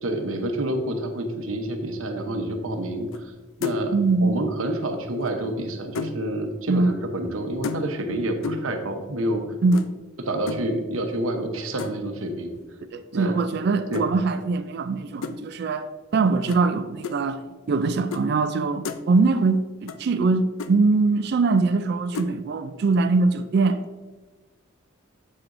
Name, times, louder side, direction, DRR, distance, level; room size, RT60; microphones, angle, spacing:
voice 1, 0.0-3.3 3.6-9.4 10.2-12.5 13.1-13.3 13.9-14.0, right 1 dB, 85° right, 0.9 m, -28 dB
sound 1, 3.1-3.3 3.6-4.0 5.2-6.2 7.6-8.1 8.4-8.8 9.7-9.9 10.5-10.7 11.8-12.1 13.9-14.1 15.2-15.4 16.5-16.6 17.0-17.2 18.1-18.3 18.6-19.0 19.9-20.0 20.3-20.4 20.6-20.7 22.1-22.3, left 4 dB, 80° left, 0.4 m, -32 dB
voice 2, 3.9-4.4 6.7-6.9 9.6-9.8 12.9-17.4 17.7-23.8, right 3 dB, 55° right, 0.3 m, -22 dB
7.6 x 7.5 x 2.6 m
head